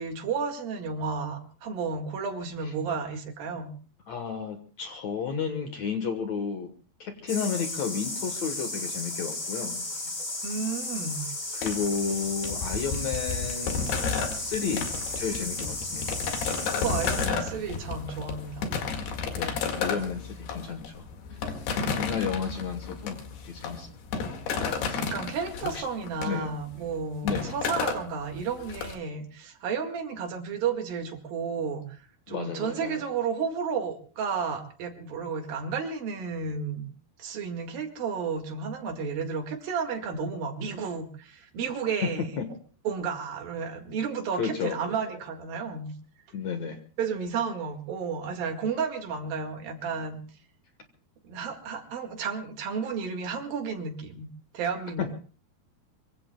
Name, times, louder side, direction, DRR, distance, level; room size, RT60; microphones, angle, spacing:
voice 1, 0.0-3.7 10.4-11.3 16.8-18.7 25.0-31.8 32.3-36.9 37.2-42.3 42.9-45.9 47.0-50.2 51.2-54.3 54.5-55.2, right 5 dB, 65° right, 4 dB, 3.6 m, -32 dB
voice 2, 4.1-6.7 7.0-9.8 11.5-14.1 14.3-14.9 15.2-16.0 19.3-21.4 22.0-23.2 23.5-23.9 24.9-25.1 25.6-25.8 26.3-26.5 27.2-27.5 32.3-33.0 42.0-42.1 42.4-42.5 44.4-44.8 46.3-46.8 55.0-55.1, left 6 dB, 60° left, 5 dB, 2.1 m, -32 dB
sound 1, 7.3-17.3, left 2 dB, 20° left, 3.0 m, -34 dB
sound 2, 11.6-28.9, left 5 dB, 80° left, 4.1 m, -32 dB
25.0 x 24.0 x 2.3 m, 0.39 s
omnidirectional pair, 4.6 m